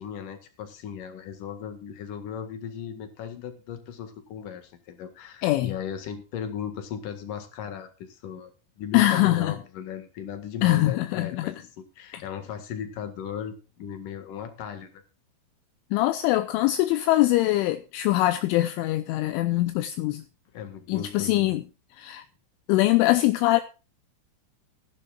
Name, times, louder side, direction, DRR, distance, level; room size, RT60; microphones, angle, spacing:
voice 1, 0.0-8.5 8.8-15.0 20.5-21.6, left 8 dB, 60° left, 2.4 m, -37 dB
voice 2, 5.4-5.7 8.9-9.5 10.6-11.5 12.1-12.2 15.9-20.2 20.9-21.6 22.0-22.2 22.7-23.6, left 16 dB, 80° left, 3.0 m, -23 dB
18.5 x 11.0 x 2.4 m
omnidirectional pair, 5.9 m